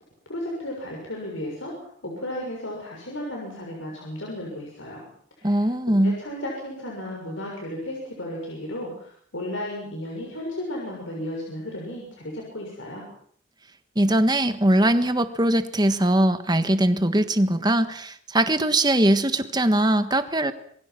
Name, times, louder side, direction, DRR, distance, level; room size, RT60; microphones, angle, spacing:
voice 1, 0.3-5.1 5.4-5.6 5.9-13.1, left 1 dB, 75° left, -1 dB, 6.8 m, -34 dB
voice 2, 5.4-6.2 13.9-20.5, right 1 dB, 20° right, 10 dB, 1.5 m, -21 dB
27.5 x 22.5 x 6.1 m, 0.63 s
head